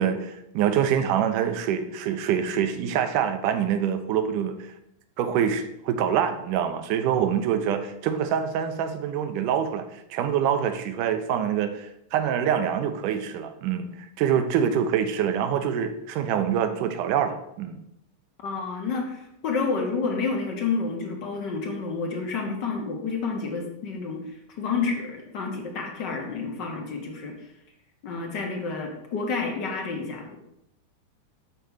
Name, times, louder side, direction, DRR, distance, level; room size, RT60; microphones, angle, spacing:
voice 1, 0.0-4.7 5.2-17.8, right 8 dB, 45° right, 8 dB, 0.8 m, -25 dB
voice 2, 18.4-27.3 28.0-30.4, left 4 dB, 45° left, 1 dB, 1.4 m, -29 dB
6.8 x 4.5 x 5.7 m, 0.81 s
figure-of-eight pair, 90°, 0 cm